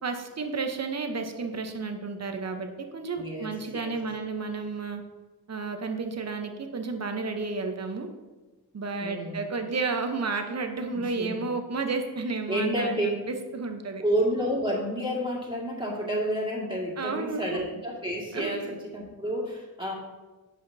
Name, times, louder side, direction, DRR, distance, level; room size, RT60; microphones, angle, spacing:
voice 1, 0.0-5.0 5.5-8.1 8.7-14.0 17.0-17.6 18.3-18.7, right 4 dB, 40° right, 5 dB, 0.9 m, -32 dB
voice 2, 3.2-4.0 9.0-9.4 10.9-11.4 12.5-13.1 14.0-19.9, equal, 10° right, -4 dB, 2.0 m, -30 dB
8.1 x 5.0 x 2.7 m, 1.2 s
cardioid pair, 55°, 41 cm